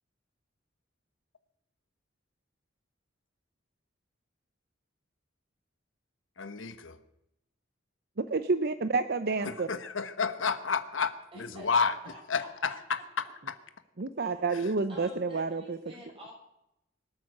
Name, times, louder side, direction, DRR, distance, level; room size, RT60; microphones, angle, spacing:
voice 1, 6.4-7.0 9.4-11.1 11.4-11.9 12.3-13.0 13.5-13.6, left 5 dB, 80° left, 11 dB, 1.2 m, -30 dB
voice 2, 8.2-9.7 14.0-15.8, right 3 dB, 55° right, 11 dB, 0.7 m, -29 dB
voice 3, 11.3-13.3 14.2-14.5 14.9-16.3, equal, 30° right, -2 dB, 6.8 m, -49 dB
24.0 x 8.8 x 6.6 m, 0.84 s
head